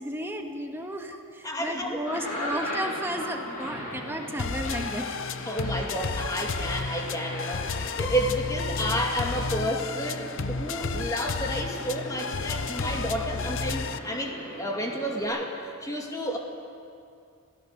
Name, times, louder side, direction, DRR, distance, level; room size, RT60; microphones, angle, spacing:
voice 1, 0.0-5.1 16.3-16.4, equal, 10° right, 3 dB, 1.5 m, -33 dB
voice 2, 1.4-2.0 5.5-16.4, equal, 15° left, 1 dB, 2.4 m, -31 dB
sound 1, 1.9-15.2, left 1 dB, 35° left, 5.9 m, -39 dB
sound 2, 4.4-14.0, left 4 dB, 60° left, 0.7 m, -32 dB
26.5 x 17.0 x 6.7 m, 2.4 s
head